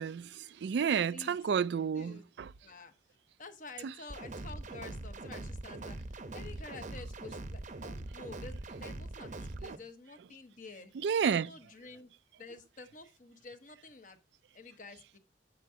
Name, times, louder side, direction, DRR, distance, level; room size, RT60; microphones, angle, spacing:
voice 1, 0.0-2.5 3.8-3.9 9.6-9.8 11.0-11.5, right 7 dB, 65° right, 0.3 m, -31 dB
voice 2, 2.6-2.9 3.4-10.9 11.3-12.1 12.4-14.2 14.5-15.2, left 3 dB, 45° left, 1.0 m, -50 dB
sound 1, 4.1-9.8, right 2 dB, 45° right, 0.7 m, -42 dB
9.1 x 6.4 x 2.7 m
head